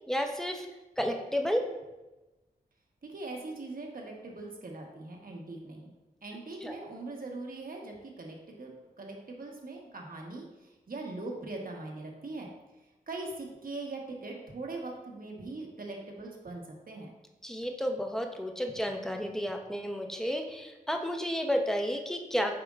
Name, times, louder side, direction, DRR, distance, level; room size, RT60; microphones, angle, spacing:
voice 1, 0.1-0.7 1.0-1.7 6.6-6.7 17.4-22.6, equal, 5° left, 3 dB, 0.7 m, -31 dB
voice 2, 3.0-5.9 6.2-8.7 9.0-12.5 13.1-17.1, right 2 dB, 65° right, 0 dB, 1.1 m, -41 dB
7.6 x 5.0 x 2.4 m, 1.1 s
wide cardioid pair, 65°, 16 cm